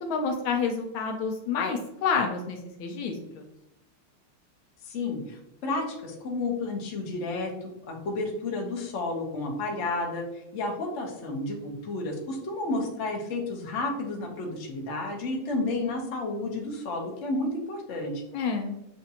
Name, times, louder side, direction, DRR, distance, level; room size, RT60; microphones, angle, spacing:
voice 1, 0.0-3.4 18.3-18.7, left 5 dB, 75° left, 3 dB, 1.3 m, -29 dB
voice 2, 4.8-10.2 10.5-18.2, left 2 dB, 50° left, 0 dB, 0.9 m, -31 dB
6.9 x 2.5 x 2.8 m, 0.87 s
omnidirectional pair, 2.3 m